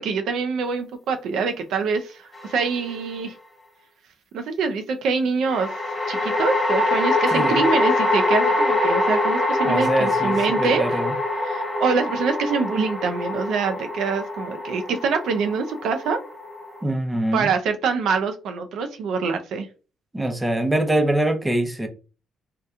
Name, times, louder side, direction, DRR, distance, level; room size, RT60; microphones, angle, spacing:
voice 1, 0.0-3.3 4.3-5.7 6.1-11.0 11.4-16.2 17.3-19.7, right 5 dB, 80° right, 6 dB, 0.4 m, -25 dB
sound 1, 2.4-3.1 5.5-16.8, left 2 dB, 20° left, 1.0 m, -24 dB
voice 2, 7.3-7.6 9.6-11.1 16.8-17.5 20.1-21.9, right 1 dB, 10° right, 6 dB, 0.6 m, -23 dB
2.8 x 2.2 x 3.5 m, 0.34 s
cardioid pair, 90°, 0 cm